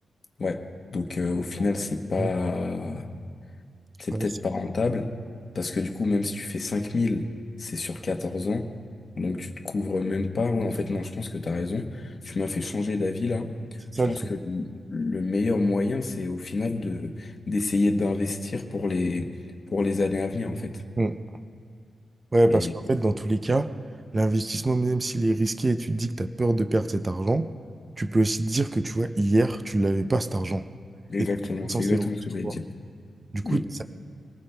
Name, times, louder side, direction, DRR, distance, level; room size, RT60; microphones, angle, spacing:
voice 1, 0.9-3.1 4.0-5.1 5.5-7.2 7.6-8.7 9.2-13.8 14.1-19.3 19.7-20.8 22.5-22.7 31.1-32.7 33.4-33.6, left 3 dB, 45° left, 5 dB, 1.0 m, -28 dB
voice 2, 22.3-23.7 24.1-27.5 28.0-30.6 31.2-31.3 31.7-32.1 32.4-32.5 33.3-33.8, right 2 dB, 25° right, 10 dB, 0.5 m, -24 dB
25.0 x 19.0 x 2.2 m, 2.1 s
wide cardioid pair, 120°, 0 cm